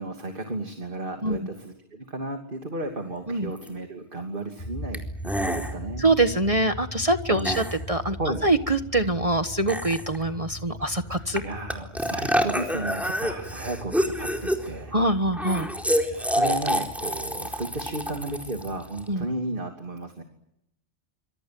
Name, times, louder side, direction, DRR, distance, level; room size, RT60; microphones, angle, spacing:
voice 1, 0.0-6.1 7.3-7.6 8.2-8.4 11.0-14.9 16.1-20.2, right 2 dB, 45° right, 4 dB, 3.1 m, -34 dB
sound 1, 3.6-3.7 4.9-5.0 5.2-5.7 7.4-7.8 9.7-10.2 11.4-11.5 11.7-14.8 15.3-19.1, equal, ahead, 4.3 m, -27 dB
sound 2, 4.6-19.0, equal, 30° left, 7.0 m, -41 dB
voice 2, 6.0-11.4 14.9-15.7 19.1-19.2, right 2 dB, 30° right, 8 dB, 1.4 m, -24 dB
27.0 x 26.5 x 7.8 m, 0.79 s
omnidirectional pair, 1.2 m